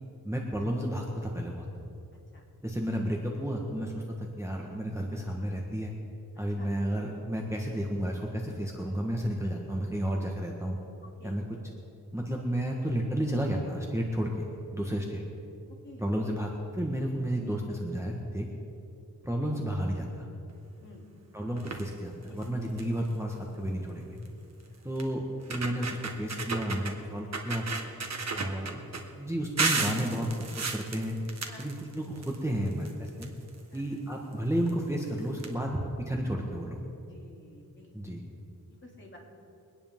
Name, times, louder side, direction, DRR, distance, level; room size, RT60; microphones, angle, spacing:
voice 1, 0.2-1.7 2.6-5.9 6.4-10.8 11.2-11.4 12.1-15.2 16.0-18.4 19.2-20.3 21.3-24.2 24.8-27.6 28.3-31.2 31.6-33.3 33.7-36.8 37.9-38.2, equal, 5° right, -1 dB, 1.5 m, -32 dB
voice 2, 11.0-11.4 15.8-16.0 20.8-21.0 22.3-22.4 24.7-25.1 28.0-28.3 31.4-31.7 33.7-34.0 37.1-38.2 38.8-39.2, left 1 dB, 30° left, -2 dB, 3.0 m, -53 dB
sound 1, 21.6-21.9 22.4-22.5 22.8-23.1 24.3-24.4 25.0-25.1 25.4-26.9 27.3-29.0 29.6-32.4 32.7-33.8 34.7-34.8 35.0-35.1 35.4-35.5, right 4 dB, 45° right, 1.5 m, -33 dB
24.0 x 9.9 x 3.7 m, 2.7 s
cardioid pair, 95°, 38 cm